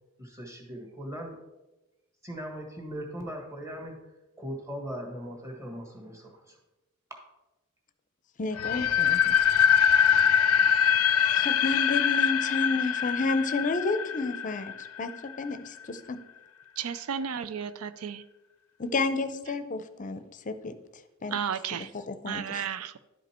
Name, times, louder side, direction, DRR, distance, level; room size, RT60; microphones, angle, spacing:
voice 1, 0.2-1.4 2.2-4.0 4.4-6.6, equal, 15° right, 1 dB, 1.5 m, -39 dB
voice 2, 8.4-9.4 11.3-16.2 18.8-20.7 21.2-21.4 21.9-22.6, left 3 dB, 35° left, 11 dB, 0.6 m, -31 dB
sound 1, 8.6-15.4, left 8 dB, 90° left, 0.5 m, -23 dB
voice 3, 16.8-18.2 21.3-21.9 22.3-23.0, right 7 dB, 85° right, 14 dB, 0.5 m, -33 dB
11.0 x 5.1 x 4.3 m, 1.0 s
head